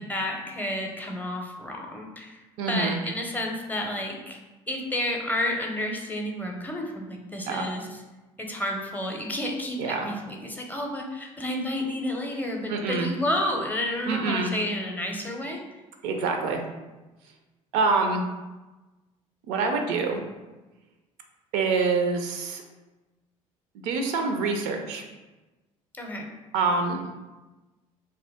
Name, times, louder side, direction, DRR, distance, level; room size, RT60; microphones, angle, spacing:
voice 1, 0.1-4.4 4.7-7.9 8.4-15.6 25.9-26.3, left 1 dB, 10° left, 0 dB, 0.6 m, -31 dB
voice 2, 2.6-3.0 7.5-7.7 9.8-10.1 12.7-13.1 14.1-14.5 16.0-16.6 17.7-18.2 19.5-20.2 21.5-22.6 23.8-25.0 26.5-27.0, right 4 dB, 65° right, 3 dB, 0.4 m, -26 dB
2.7 x 2.1 x 3.3 m, 1.1 s
hypercardioid pair, 55°, 17 cm